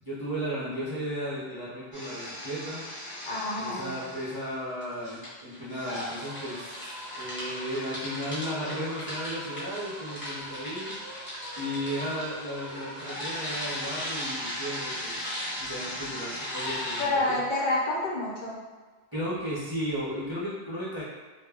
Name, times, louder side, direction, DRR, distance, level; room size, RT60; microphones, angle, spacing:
voice 1, 0.0-2.8 3.6-6.9 7.1-11.2 11.6-15.3 15.6-17.4 19.1-21.0, equal, 30° right, -10 dB, 0.5 m, -35 dB
sound 1, 1.9-4.5 4.8-17.0, equal, 10° left, 0.9 m, -37 dB
voice 2, 3.3-4.0 17.0-18.6, left 2 dB, 55° left, -6 dB, 0.8 m, -28 dB
2.2 x 2.1 x 3.4 m, 1.3 s
omnidirectional pair, 1.0 m